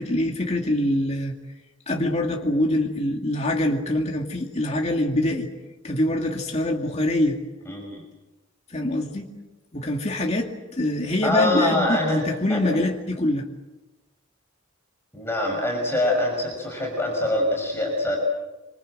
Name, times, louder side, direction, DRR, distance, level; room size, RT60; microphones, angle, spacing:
voice 1, 0.0-1.3 1.9-5.5 5.8-7.4 8.7-9.3 9.7-13.5, left 1 dB, 35° left, 1 dB, 2.4 m, -24 dB
voice 2, 7.7-8.0 11.2-12.2 12.5-12.6 15.1-18.2, left 1 dB, 10° left, 0 dB, 6.1 m, -24 dB
27.0 x 26.0 x 7.7 m, 1.1 s
head